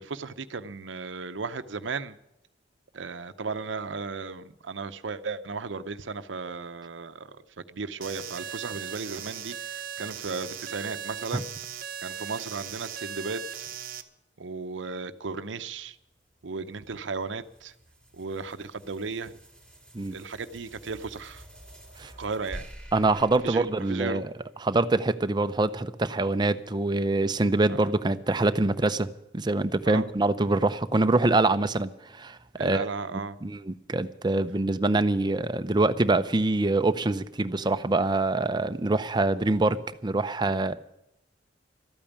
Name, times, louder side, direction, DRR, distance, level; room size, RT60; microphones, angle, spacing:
voice 1, 0.0-2.2 2.9-7.3 7.7-11.5 12.0-13.7 14.4-15.9 16.4-17.7 18.2-19.3 20.1-21.4 22.0-22.7 23.4-24.2 29.9-30.1 32.6-33.4, right 4 dB, 90° right, 0.7 m, -35 dB
sound 1, 8.0-14.0, right 9 dB, 50° right, 0.9 m, -38 dB
sound 2, 16.1-24.7, right 1 dB, 5° left, 3.2 m, -49 dB
voice 2, 22.9-24.3 24.6-29.1 29.3-32.9 33.4-40.7, right 2 dB, 25° right, 0.6 m, -25 dB
13.0 x 8.8 x 10.0 m
head